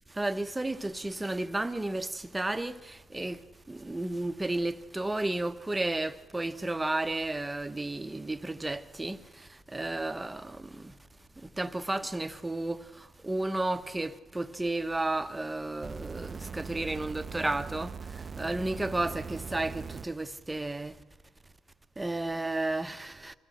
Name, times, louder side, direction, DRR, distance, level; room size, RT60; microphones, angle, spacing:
voice 1, 0.2-3.4 3.7-9.2 9.7-10.7 11.6-12.8 13.2-17.9 18.4-20.9 22.0-23.3, right 2 dB, 15° right, 1.0 m, -32 dB
sound 1, 15.8-20.1 21.0-21.1, right 5 dB, 35° right, 0.6 m, -41 dB
25.0 x 15.5 x 7.7 m
cardioid pair, 90°, 0 cm